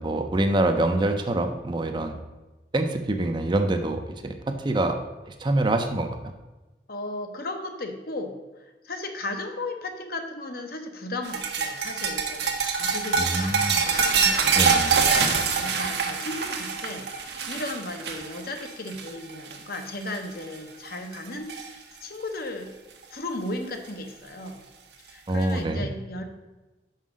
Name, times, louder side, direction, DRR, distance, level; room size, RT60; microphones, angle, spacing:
voice 1, 0.0-2.2 2.7-5.0 5.3-6.3 13.2-13.8 14.5-14.9 25.3-25.9, right 2 dB, 25° right, 6 dB, 0.6 m, -25 dB
voice 2, 6.9-15.0 15.3-22.7 23.1-24.6 25.0-26.2, left 2 dB, 55° left, 5 dB, 0.9 m, -36 dB
sound 1, 11.2-19.8 20.1-20.4 20.9-21.7 23.0-23.1 24.4-24.5, right 5 dB, 70° right, 0.9 m, -25 dB
5.6 x 5.1 x 6.2 m, 1.1 s
head